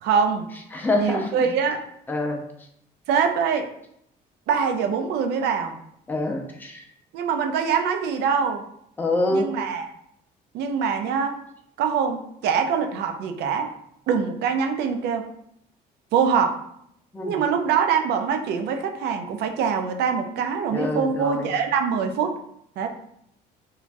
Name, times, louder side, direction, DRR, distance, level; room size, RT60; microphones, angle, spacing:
voice 1, 0.0-0.5 1.0-1.8 3.1-3.7 4.5-5.7 7.1-8.6 9.3-9.8 10.5-11.4 11.8-13.7 14.1-15.2 16.1-16.5 17.2-22.3 22.8-22.9, right 6 dB, 75° right, 6 dB, 0.4 m, -24 dB
voice 2, 0.7-1.5 2.1-2.4 6.1-6.8 9.0-9.6 17.1-17.4 20.7-21.5, left 2 dB, 10° left, 1 dB, 0.5 m, -26 dB
3.1 x 2.3 x 2.5 m, 0.72 s
cardioid pair, 110°, 17 cm